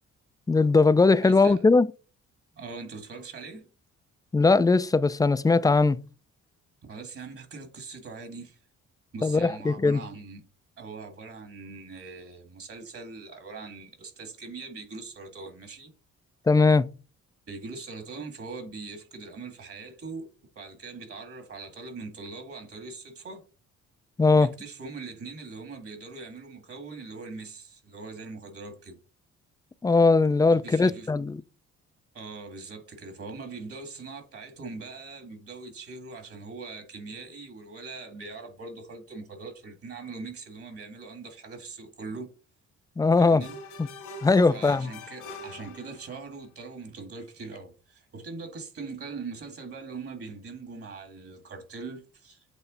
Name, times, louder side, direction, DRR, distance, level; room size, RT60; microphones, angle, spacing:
voice 1, 0.5-1.9 4.3-6.0 9.2-10.0 16.5-16.9 24.2-24.5 29.8-31.4 43.0-43.4 44.2-44.9, left 3 dB, 10° left, 0.4 m, -20 dB
voice 2, 1.2-1.6 2.5-3.7 6.9-8.6 9.1-10.4 10.8-15.9 17.5-20.3 20.6-23.4 24.3-29.0 30.5-31.1 32.1-42.3 43.2-43.6 44.5-52.4, right 4 dB, 50° right, 1.9 m, -41 dB
sound 1, 43.4-46.3, left 2 dB, 80° left, 2.0 m, -44 dB
8.2 x 3.2 x 3.9 m
cardioid pair, 90°, 30 cm